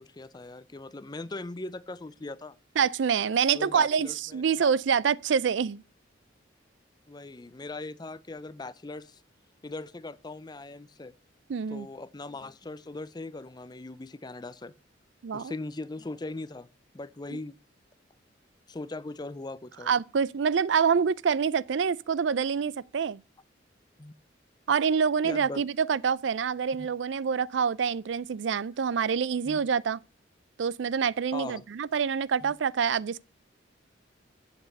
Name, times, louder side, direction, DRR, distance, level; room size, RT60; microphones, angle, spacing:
voice 1, 0.0-2.6 3.5-4.7 7.1-9.2 9.6-11.1 11.7-14.7 15.3-16.7 16.9-17.6 18.7-19.9 24.0-24.1 25.2-25.6 26.8-26.9 29.4-29.6 31.3-31.6 32.4-32.5, left 2 dB, 20° left, 0.5 m, -40 dB
voice 2, 2.8-5.8 11.5-11.9 15.2-15.5 17.3-17.4 19.9-23.2 24.7-30.0 30.6-33.2, right 6 dB, 70° right, 0.4 m, -26 dB
9.6 x 7.9 x 5.4 m
head